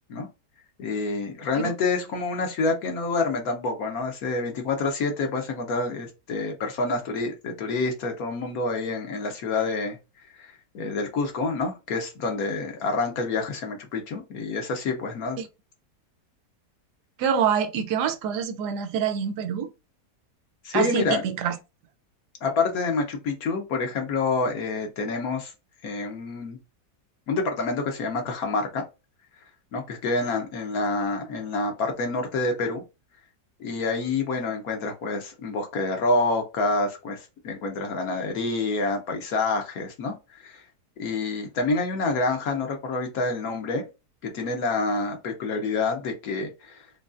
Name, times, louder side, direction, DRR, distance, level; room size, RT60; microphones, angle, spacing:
voice 1, 0.8-10.0 10.4-15.4 20.6-21.2 22.4-25.5 25.8-26.6 27.3-28.8 29.7-32.8 33.6-40.1 40.4-40.6 41.0-43.9 44.2-46.8, left 3 dB, 65° left, 1.2 m, -27 dB
voice 2, 17.2-19.7 20.7-21.6, right 7 dB, 75° right, 1.1 m, -26 dB
3.9 x 3.1 x 2.5 m
omnidirectional pair, 1.8 m